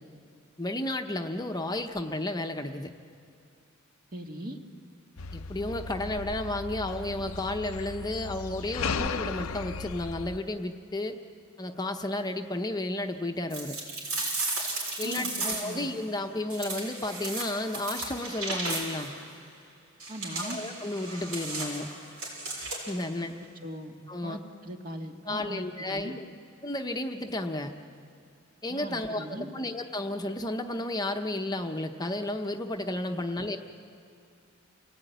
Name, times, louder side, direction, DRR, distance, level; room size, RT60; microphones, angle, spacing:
voice 1, 0.6-2.9 5.3-11.2 11.6-13.8 15.0-19.1 20.4-21.9 22.5-23.3 24.1-24.4 25.3-26.2 26.6-27.7 28.6-33.6, left 1 dB, 20° left, 5 dB, 0.9 m, -32 dB
voice 2, 4.1-4.6 15.0-15.9 20.1-20.6 23.2-23.3 23.6-23.9 24.2-26.2 28.7-29.5 33.1-33.2, equal, 45° right, 3 dB, 1.8 m, -39 dB
sound 1, 5.2-10.4, left 4 dB, 80° left, 0.7 m, -36 dB
sound 2, 13.5-15.9 16.5-19.1 20.0-23.0, right 2 dB, 90° right, 6.8 m, -35 dB
29.5 x 18.0 x 9.2 m, 2.5 s
head